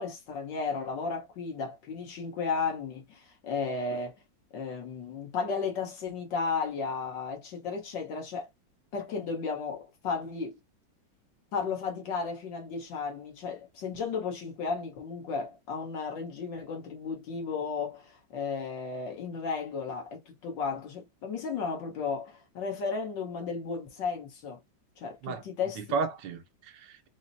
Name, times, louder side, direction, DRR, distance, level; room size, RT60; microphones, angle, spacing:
voice 1, 0.0-4.1 4.5-8.5 8.9-10.5 11.5-24.6 25.0-25.8, left 5 dB, 80° left, 1.9 m, -34 dB
voice 2, 25.2-27.1, right 5 dB, 80° right, 1.5 m, -34 dB
5.8 x 2.1 x 2.6 m
omnidirectional pair, 1.9 m